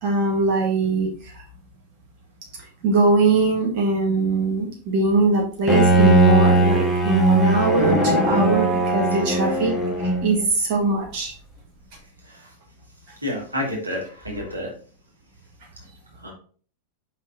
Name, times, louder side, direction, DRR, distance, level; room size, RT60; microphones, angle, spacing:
voice 1, 0.0-1.1 2.8-9.7 10.2-11.3, right 3 dB, 45° right, -1 dB, 1.7 m, -21 dB
Bowed string instrument, 5.7-10.4, right 1 dB, 10° left, 1.3 m, -19 dB
voice 2, 13.2-14.7 16.2-16.3, left 1 dB, 85° right, -2 dB, 2.1 m, -29 dB
5.4 x 4.7 x 3.8 m, 0.43 s
figure-of-eight pair, 90°, 0 cm